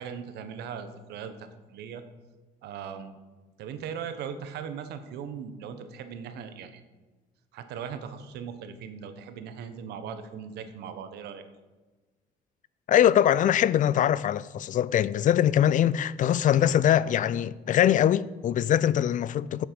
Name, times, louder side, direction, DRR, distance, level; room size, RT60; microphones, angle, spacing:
voice 1, 0.0-2.0 2.6-3.2 3.6-6.8 7.5-11.4, right 7 dB, 80° right, 1.3 m, -39 dB
voice 2, 12.9-19.6, left 10 dB, 50° left, 0.4 m, -22 dB
10.5 x 7.2 x 7.0 m
cardioid pair, 110°, 17 cm